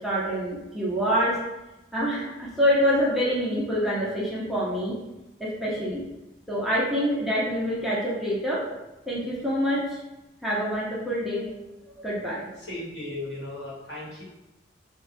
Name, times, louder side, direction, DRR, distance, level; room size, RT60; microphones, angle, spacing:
voice 1, 0.0-1.3 1.9-5.0 5.4-6.0 6.5-8.6 9.1-9.8 10.4-11.5 12.0-12.5, equal, ahead, -8 dB, 0.5 m, -26 dB
voice 2, 12.6-14.2, left 1 dB, 70° left, -7 dB, 1.1 m, -36 dB
2.8 x 2.1 x 2.5 m, 0.98 s
head